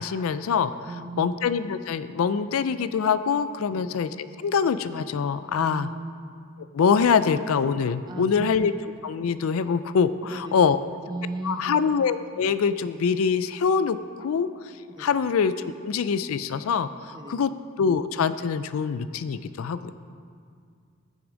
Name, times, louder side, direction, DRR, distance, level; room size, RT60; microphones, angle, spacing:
voice 1, 0.0-0.9 1.2-5.9 6.7-8.7 9.0-10.8 11.4-14.5 15.0-17.5 17.8-19.9, left 6 dB, 75° left, 13 dB, 0.4 m, -24 dB
voice 2, 0.9-1.4 3.7-3.9 5.6-6.1 8.1-8.5 10.2-10.8 11.1-11.8 15.0-15.1 17.1-17.4, right 2 dB, 20° right, 5 dB, 0.6 m, -36 dB
13.5 x 6.1 x 5.1 m, 2.2 s
head